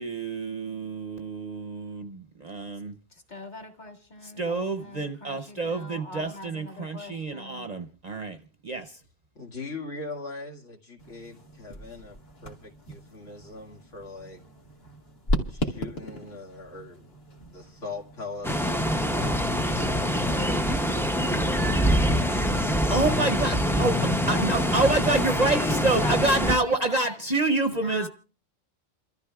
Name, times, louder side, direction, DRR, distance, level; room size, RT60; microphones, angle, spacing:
voice 1, 0.0-2.9 4.2-8.4 8.6-8.9 22.9-28.1, right 2 dB, 40° right, 0.7 m, -27 dB
voice 2, 3.1-7.7 20.1-21.2 24.2-24.8 25.1-27.2 27.7-28.1, left 3 dB, 35° left, 1.8 m, -41 dB
voice 3, 9.3-14.4 15.5-17.0 17.5-20.1, left 3 dB, 80° left, 2.5 m, -41 dB
sound 1, 11.0-18.7, equal, 55° left, 1.9 m, -36 dB
sound 2, 18.4-26.6, equal, 5° left, 0.3 m, -25 dB
28.5 x 13.5 x 2.3 m
omnidirectional pair, 1.3 m